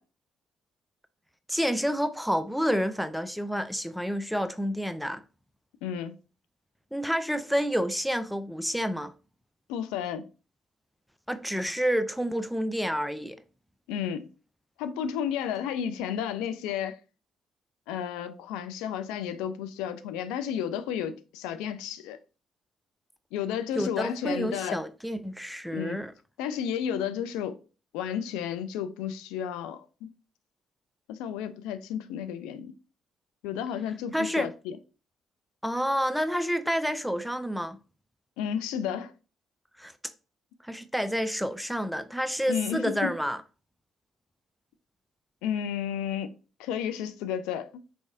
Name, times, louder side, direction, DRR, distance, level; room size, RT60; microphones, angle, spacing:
voice 1, 1.5-5.2 6.9-9.1 11.3-13.4 23.8-26.1 34.1-34.5 35.6-37.8 39.8-39.9 40.6-43.4, equal, ahead, 0.4 m, -29 dB
voice 2, 5.8-6.2 9.7-10.3 13.9-14.3 14.8-17.0 17.9-22.2 23.3-24.8 25.7-26.0 26.4-27.6 27.9-30.1 31.1-32.7 33.4-34.8 38.4-39.1 42.5-43.1 45.4-46.3 46.6-47.7, left 8 dB, 80° left, 0.4 m, -32 dB
4.5 x 3.2 x 2.6 m
hypercardioid pair, 50°, 0 cm